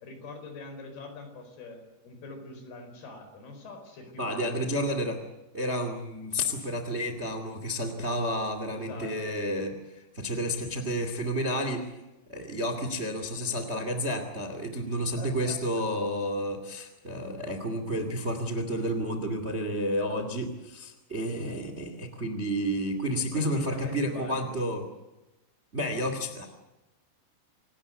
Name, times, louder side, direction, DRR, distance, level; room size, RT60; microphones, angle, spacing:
voice 1, 0.0-4.6 8.7-9.4 15.2-15.9 16.1-16.2 23.2-24.6, left 3 dB, 60° left, 6 dB, 6.5 m, -43 dB
voice 2, 4.2-5.2 5.5-11.8 12.3-24.8 25.7-26.5, equal, 25° right, 7 dB, 1.7 m, -31 dB
26.5 x 19.0 x 8.1 m, 1.0 s
omnidirectional pair, 5.1 m